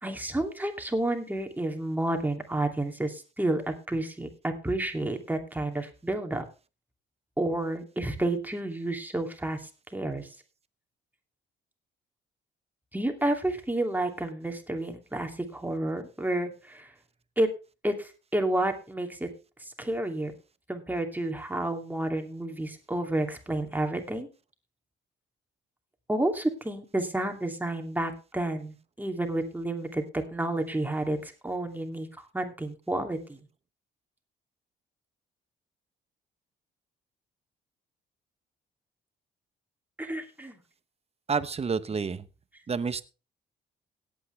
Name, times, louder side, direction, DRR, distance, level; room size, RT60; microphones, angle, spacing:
voice 1, 0.0-6.5 7.4-10.3 12.9-16.9 17.4-17.5 17.8-19.3 19.6-20.3 20.7-24.3 26.1-33.4 40.0-40.6, right 1 dB, 10° right, 4 dB, 2.6 m, -30 dB
voice 2, 41.3-42.3 42.7-43.0, right 5 dB, 30° right, 13 dB, 1.0 m, -29 dB
17.0 x 8.7 x 3.3 m, 0.31 s
cardioid pair, 90°, 20 cm